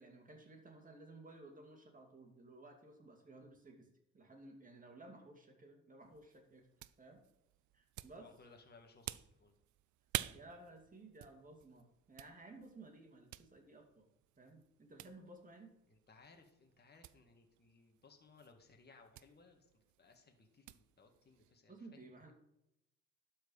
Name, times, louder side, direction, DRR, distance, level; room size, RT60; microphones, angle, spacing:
voice 1, 0.0-3.9 4.1-6.7 7.0-7.2 7.7-8.3 10.3-14.0 14.4-15.7 21.7-22.3, right 2 dB, 25° right, 2 dB, 2.3 m, -56 dB
sound 1, 6.0-21.6, right 15 dB, 75° right, 0.5 m, -51 dB
voice 2, 8.2-9.5 15.9-19.7 20.0-22.3, left 4 dB, 35° left, 3 dB, 1.8 m, -63 dB
12.0 x 4.7 x 5.5 m, 0.86 s
cardioid pair, 90°, 30 cm